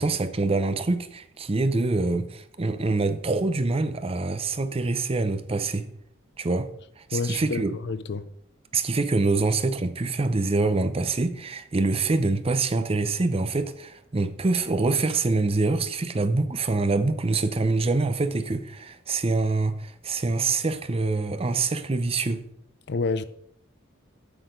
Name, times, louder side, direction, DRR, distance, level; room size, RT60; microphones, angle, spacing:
voice 1, 0.0-5.9 6.4-6.7 7.1-7.8 8.7-22.4, right 3 dB, 30° right, 0.6 m, -25 dB
voice 2, 7.1-8.3 22.9-23.2, left 4 dB, 55° left, 0.5 m, -28 dB
7.9 x 6.3 x 5.1 m
head